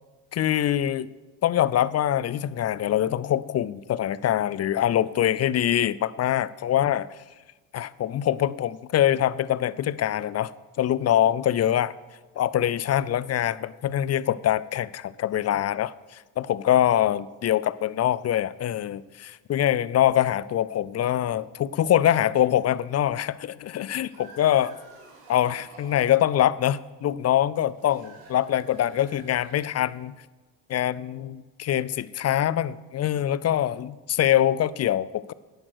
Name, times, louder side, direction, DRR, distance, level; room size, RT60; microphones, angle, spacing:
voice 1, 0.3-1.1 1.4-7.1 7.7-10.5 10.8-11.9 12.4-15.9 16.4-24.8 25.3-30.2 30.7-35.3, left 11 dB, 40° left, 19 dB, 0.4 m, -24 dB
sound 1, 23.9-26.3 27.7-30.1, right 3 dB, 90° right, 2.1 m, -50 dB
10.5 x 6.5 x 6.3 m, 1.2 s
hypercardioid pair, 60°, 43 cm